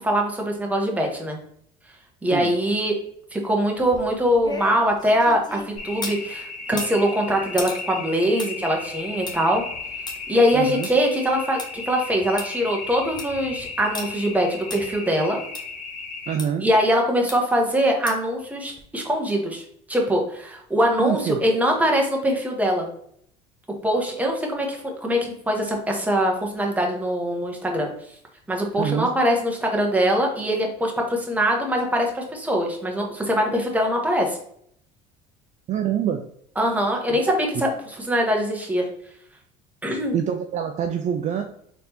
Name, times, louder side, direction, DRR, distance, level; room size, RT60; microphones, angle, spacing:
voice 1, 0.0-1.4 2.2-3.0 3.3-9.6 10.3-15.4 16.6-19.6 19.9-22.9 23.8-27.9 28.5-34.4 36.6-37.7 38.1-38.9 39.8-40.2, equal, 10° right, 1 dB, 1.2 m, -22 dB
sound 1, 3.8-6.2 6.7-11.7 12.1-12.2 12.4-12.5 12.9-13.4 13.9-14.1 14.7-14.8 15.5-15.6 16.4-16.5 17.3-17.6 18.1-18.3 18.8-18.9, left 3 dB, 25° left, 0.9 m, -37 dB
sound 2, 5.8-16.4, left 3 dB, 45° left, 1.7 m, -35 dB
voice 2, 10.5-10.9 16.3-16.7 21.0-21.4 28.8-29.1 35.7-36.2 37.1-37.6 40.1-41.4, right 8 dB, 45° right, 5 dB, 0.5 m, -26 dB
4.0 x 3.4 x 2.8 m, 0.67 s
supercardioid pair, 95°, 17 cm